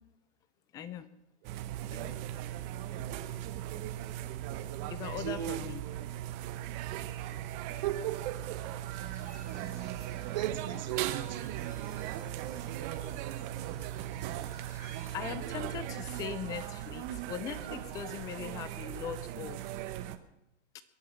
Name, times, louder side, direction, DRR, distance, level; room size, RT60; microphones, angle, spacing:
voice 1, 0.7-1.1 1.9-2.2 3.0-3.2 3.8-4.3 4.9-5.8 7.0-7.8 12.5-12.8 14.0-14.1 15.1-19.9 20.7-20.8, left 8 dB, 10° left, 0.6 m, -41 dB
sound 1, 1.4-20.2, right 12 dB, 20° right, 0.9 m, -38 dB
voice 2, 5.2-5.6 7.4-8.8 10.3-11.6, right 13 dB, 40° right, 1.2 m, -36 dB
sound 2, 8.9-15.2, left 3 dB, 80° left, 5.2 m, -59 dB
22.5 x 8.6 x 7.2 m
hypercardioid pair, 150°, 36 cm